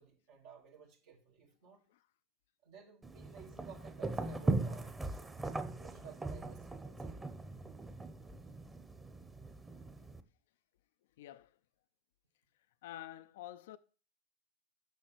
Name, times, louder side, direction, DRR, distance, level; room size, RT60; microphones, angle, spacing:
voice 1, 0.0-1.8 2.6-5.0 5.8-7.2, right 7 dB, 70° right, 1.8 m, -55 dB
sound 1, 3.0-10.2, right 2 dB, 15° right, 0.9 m, -39 dB
voice 2, 11.2-11.6 12.8-13.8, left 13 dB, 70° left, 0.4 m, -49 dB
6.2 x 6.2 x 6.7 m
hypercardioid pair, 90°, 0 cm